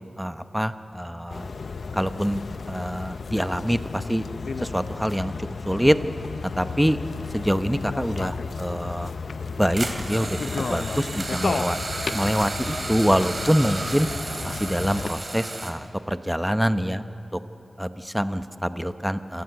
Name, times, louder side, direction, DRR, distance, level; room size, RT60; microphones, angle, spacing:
voice 1, 0.2-1.5 1.9-2.4 2.7-4.2 4.6-6.0 6.6-7.0 7.3-9.1 9.6-10.4 10.7-11.8 12.1-14.1 14.4-17.0 17.3-17.4 17.8-19.4, equal, 5° right, 10 dB, 0.9 m, -25 dB
sound 1, 1.3-15.1, left 4 dB, 75° left, 0.7 m, -33 dB
sound 2, 9.8-15.7, right 2 dB, 40° right, 2.9 m, -33 dB
27.0 x 18.0 x 7.9 m, 2.8 s
wide cardioid pair, 100°, 0 cm